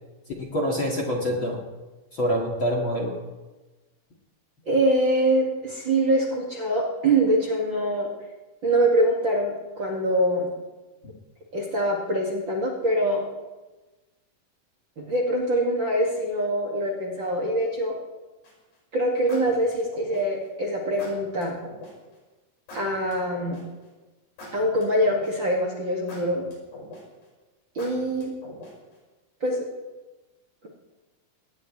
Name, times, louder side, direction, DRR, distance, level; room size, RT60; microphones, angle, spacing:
voice 1, 0.4-1.6 2.1-3.2, equal, 40° left, -1 dB, 2.1 m, -26 dB
voice 2, 4.7-8.1 8.6-10.5 11.5-13.3 15.0-18.0 18.9-21.6 22.7-23.6 24.5-26.4 27.7-28.3 29.4-29.7, right 1 dB, 40° right, -2 dB, 2.2 m, -24 dB
sound 1, 18.4-18.7 19.3-20.4 21.0-21.9 22.7-23.8 24.4-25.5 26.1-27.2 27.8-28.9, left 1 dB, 65° left, 7.0 m, -43 dB
21.5 x 19.0 x 3.2 m, 1.2 s
omnidirectional pair, 4.3 m